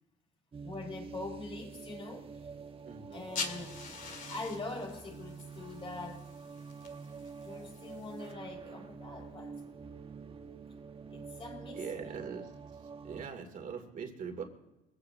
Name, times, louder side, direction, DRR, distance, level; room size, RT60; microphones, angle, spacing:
sound 1, 0.5-13.3, right 5 dB, 35° right, 1.4 m, -47 dB
voice 1, 0.6-2.3 3.1-6.3 7.4-9.5 11.1-12.2, left 3 dB, 30° left, 0 dB, 5.3 m, -43 dB
voice 2, 2.8-3.4 11.8-12.4 13.0-14.4, right 6 dB, 50° right, 4 dB, 2.8 m, -41 dB
sound 2, 3.1-8.3, left 5 dB, 50° left, 2.2 m, -45 dB
24.5 x 15.5 x 2.9 m, 0.97 s
cardioid pair, 110°, 17 cm